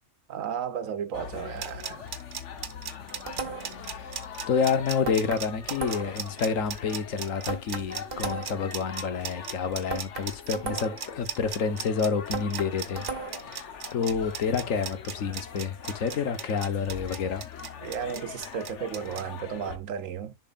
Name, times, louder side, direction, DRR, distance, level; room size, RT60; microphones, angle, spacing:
voice 1, 0.3-2.1 17.8-20.3, right 8 dB, 85° right, 1.3 m, -34 dB
sound 1, 1.1-19.8, left 7 dB, 65° left, 1.3 m, -43 dB
sound 2, 1.4-19.2, right 8 dB, 70° right, 1.2 m, -37 dB
sound 3, 3.3-3.9 5.0-6.3 7.5-8.7 9.9-11.1 12.3-13.5, right 4 dB, 45° right, 1.3 m, -36 dB
voice 2, 3.7-4.2 4.5-13.0 13.5-17.4, left 6 dB, 80° left, 1.5 m, -29 dB
10.5 x 4.9 x 2.5 m
omnidirectional pair, 1.3 m